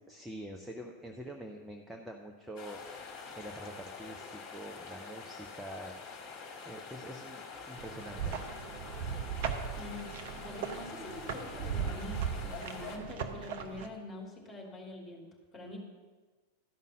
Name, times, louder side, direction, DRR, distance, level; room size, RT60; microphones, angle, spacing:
voice 1, 0.1-6.0 6.6-8.5, right 1 dB, 5° right, 1 dB, 0.7 m, -46 dB
sound 1, 2.6-13.0, left 5 dB, 40° left, 1.8 m, -46 dB
sound 2, 7.8-13.9, right 7 dB, 55° right, 0.8 m, -38 dB
voice 2, 9.8-15.3 15.5-15.8, left 2 dB, 15° left, -1 dB, 2.8 m, -45 dB
12.5 x 5.4 x 6.2 m, 1.4 s
figure-of-eight pair, 90°, 0 cm